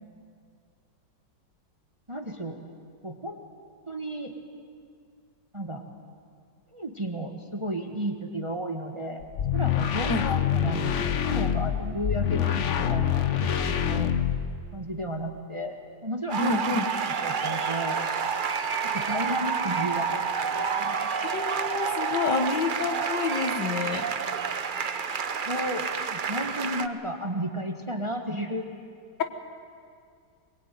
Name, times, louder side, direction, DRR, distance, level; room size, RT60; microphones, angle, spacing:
voice 1, 2.1-2.6 3.0-3.4 3.9-4.3 5.5-5.8 6.7-9.3 9.5-13.3 13.6-14.1 14.7-15.8 16.0-16.5 17.2-18.1 18.8-21.1 25.5-28.7, equal, 15° right, 4 dB, 1.4 m, -33 dB
sound 1, 9.2-14.7, left 9 dB, 50° left, 1.0 m, -26 dB
sound 2, 16.3-26.9, right 6 dB, 55° right, 0.5 m, -29 dB
voice 2, 16.4-16.9 21.2-24.1, left 4 dB, 65° left, 7 dB, 2.0 m, -28 dB
22.0 x 22.0 x 9.2 m, 2.2 s
omnidirectional pair, 2.1 m